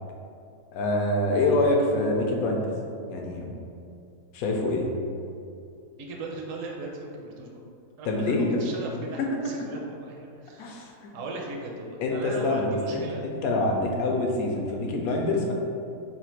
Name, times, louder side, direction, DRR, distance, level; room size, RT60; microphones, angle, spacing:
voice 1, 0.7-2.7 3.1-3.5 4.3-4.9 8.1-9.0 10.6-11.1 12.0-15.5, left 2 dB, 70° left, 0 dB, 1.0 m, -26 dB
voice 2, 5.9-7.6 8.0-13.3, right 2 dB, 65° right, -1 dB, 0.9 m, -38 dB
3.4 x 2.4 x 4.4 m, 2.5 s
omnidirectional pair, 1.7 m